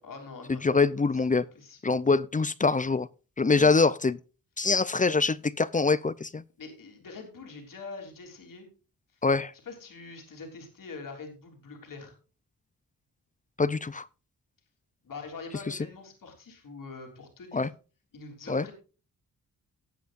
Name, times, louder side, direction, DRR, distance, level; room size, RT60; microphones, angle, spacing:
voice 1, 0.0-0.9 1.5-1.8 6.6-8.7 9.6-12.1 15.0-17.7 18.1-18.7, left 4 dB, 65° left, 3.3 m, -44 dB
voice 2, 0.6-1.4 1.8-3.1 3.4-4.2 4.6-6.4 9.2-9.5 13.6-14.1 15.7-15.8 17.5-17.7 18.5-18.6, left 4 dB, 25° left, 0.4 m, -24 dB
18.0 x 8.1 x 2.5 m
wide cardioid pair, 135°, 35 cm